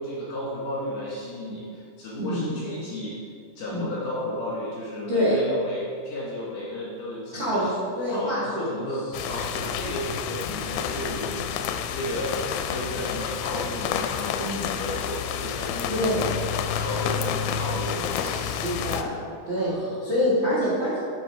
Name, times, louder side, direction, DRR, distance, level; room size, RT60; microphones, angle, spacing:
voice 1, 0.0-3.2 3.6-7.7 8.1-12.4 12.7-16.1 16.8-18.8 19.5-20.0, equal, 60° left, -7 dB, 2.4 m, -33 dB
voice 2, 2.2-2.6 3.7-3.9 5.1-5.4 7.3-7.7 8.0-8.7 10.5-10.6 14.4-14.7 15.9-16.3 18.2-19.1 19.5-21.0, equal, 75° right, -9 dB, 1.0 m, -26 dB
sound 1, 9.1-19.0, left 8 dB, 85° left, 2.8 m, -29 dB
7.9 x 6.5 x 4.8 m, 2.2 s
omnidirectional pair, 5.5 m